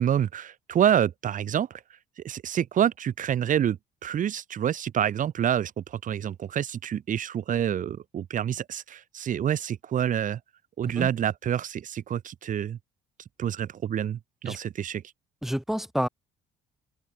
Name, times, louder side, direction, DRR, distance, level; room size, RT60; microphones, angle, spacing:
voice 1, 0.0-1.8 2.2-10.4 10.8-12.8 13.4-15.0, right 9 dB, 50° right, 2.6 m, -27 dB
voice 2, 15.4-16.1, equal, ahead, 7.1 m, -28 dB
cardioid pair, 110°, 17 cm